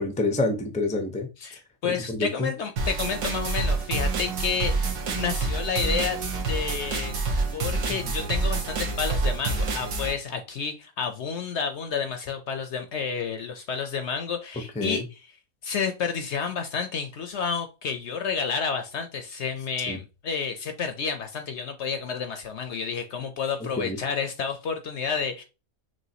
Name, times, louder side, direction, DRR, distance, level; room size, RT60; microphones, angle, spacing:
voice 1, 0.0-1.3 1.9-2.5 14.8-15.0 19.9-20.0 23.8-24.0, left 2 dB, 10° left, 0.3 m, -27 dB
voice 2, 1.4-6.2 6.5-7.2 7.5-15.2 15.6-25.4, left 6 dB, 60° left, 0.8 m, -30 dB
sound 1, 2.8-10.1, right 3 dB, 70° right, 1.4 m, -27 dB
6.2 x 2.6 x 2.8 m
omnidirectional pair, 1.6 m